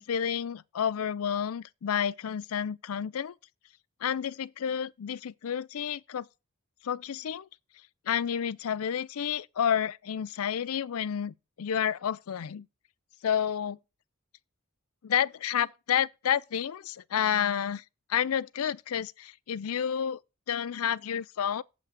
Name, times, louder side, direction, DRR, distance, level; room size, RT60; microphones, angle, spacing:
voice 1, 0.0-3.3 4.0-6.3 6.8-7.5 8.1-12.7 13.2-13.8 15.0-17.8 18.1-20.2 20.5-21.6, left 8 dB, 80° left, 0.4 m, -30 dB
8.1 x 5.8 x 6.6 m
head